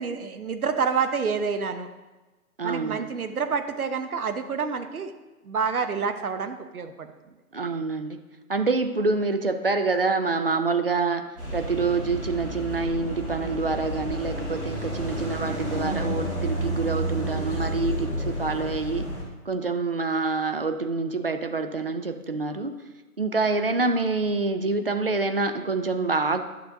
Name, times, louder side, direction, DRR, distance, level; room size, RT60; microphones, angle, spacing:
voice 1, 0.0-1.9 2.6-5.1 5.4-7.1, right 5 dB, 70° right, 8 dB, 1.0 m, -28 dB
voice 2, 2.6-3.0 7.5-8.2 8.5-19.1 19.5-22.8 23.2-26.4, right 3 dB, 40° right, 8 dB, 0.4 m, -26 dB
sound 1, 11.4-19.2, right 1 dB, ahead, 1.1 m, -30 dB
11.5 x 6.5 x 2.6 m, 1.2 s
figure-of-eight pair, 155°, 45 cm